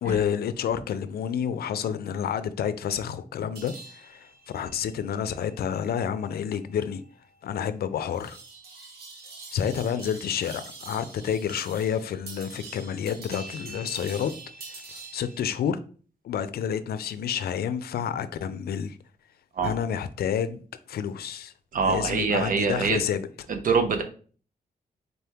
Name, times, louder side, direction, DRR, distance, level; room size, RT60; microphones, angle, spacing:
voice 1, 0.0-4.3 4.5-7.0 7.4-8.4 9.5-14.3 15.1-15.8 16.2-19.0 19.6-20.6 20.9-21.5 21.8-23.3, left 8 dB, 80° left, 0.4 m, -29 dB
sound 1, 3.6-15.4, right 3 dB, 85° right, 1.0 m, -45 dB
voice 2, 21.7-23.0 23.5-24.0, right 5 dB, 60° right, 0.6 m, -24 dB
4.0 x 3.4 x 2.8 m
wide cardioid pair, 175°, 16 cm